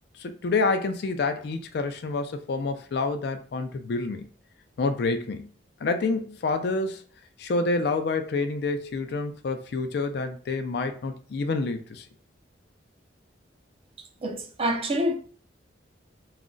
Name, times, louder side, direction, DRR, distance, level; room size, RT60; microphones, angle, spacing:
voice 1, 0.2-4.3 4.8-5.5 5.8-7.0 7.4-12.0, left 3 dB, 60° left, 0.4 m, -28 dB
voice 2, 14.2-15.1, equal, 30° right, 0.4 m, -26 dB
2.4 x 2.0 x 3.7 m
head